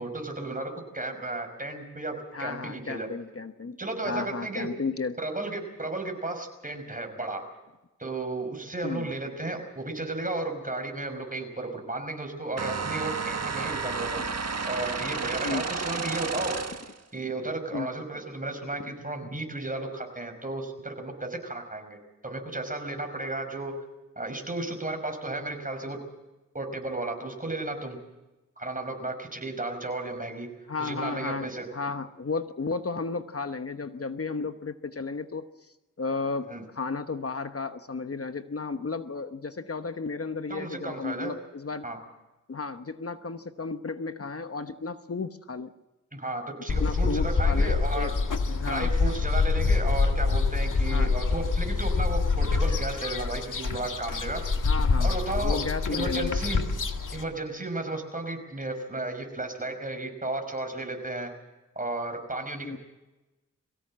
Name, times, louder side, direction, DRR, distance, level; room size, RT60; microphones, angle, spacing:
voice 1, 0.0-3.1 3.8-4.7 5.2-7.4 8.0-14.2 14.6-16.5 17.1-22.0 22.2-23.7 24.2-26.0 26.5-28.0 28.6-30.5 30.8-31.7 36.5-36.6 40.5-41.3 41.8-42.0 46.1-48.1 48.5-54.4 55.0-55.6 55.9-56.6 57.1-61.3 61.8-62.8, right 2 dB, 25° right, 5 dB, 5.5 m, -34 dB
voice 2, 2.3-3.8 4.1-5.2 8.8-9.1 14.2-14.3 15.4-15.7 17.7-17.9 18.8-18.9 30.7-41.9 42.5-45.7 46.8-48.1 48.5-48.9 50.8-51.1 54.6-56.4 62.6-62.8, left 4 dB, 45° left, 9 dB, 1.1 m, -33 dB
sound 1, 12.6-17.0, right 5 dB, 55° right, 1.6 m, -32 dB
sound 2, 46.7-57.2, left 4 dB, 75° left, 2.0 m, -26 dB
23.0 x 16.5 x 7.5 m, 1.0 s
cardioid pair, 50°, 31 cm